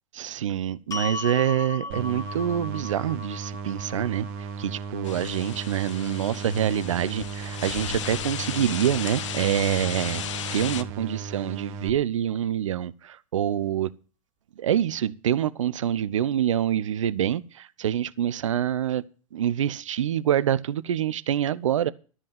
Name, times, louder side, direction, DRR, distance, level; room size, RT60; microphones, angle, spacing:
voice 1, 0.1-4.3 4.6-10.2 10.5-13.9 14.6-19.0 19.3-21.9, right 10 dB, 65° right, 0.5 m, -26 dB
sound 1, 0.9-7.1, left 3 dB, 20° left, 1.4 m, -38 dB
sound 2, 1.9-11.9, right 5 dB, 45° right, 1.1 m, -36 dB
sound 3, 5.0-10.8, left 10 dB, 60° left, 0.8 m, -35 dB
12.5 x 5.3 x 8.9 m
figure-of-eight pair, 90°, 18 cm